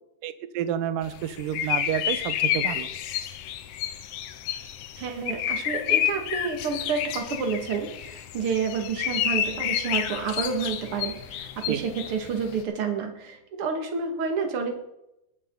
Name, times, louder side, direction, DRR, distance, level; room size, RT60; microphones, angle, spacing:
voice 1, 0.2-2.9 11.7-11.8, right 10 dB, 75° right, 12 dB, 2.1 m, -30 dB
sound 1, 1.0-12.6, left 10 dB, 80° left, 1.8 m, -30 dB
voice 2, 5.0-14.8, right 5 dB, 45° right, 4 dB, 2.1 m, -29 dB
21.0 x 8.8 x 3.9 m, 0.84 s
omnidirectional pair, 4.7 m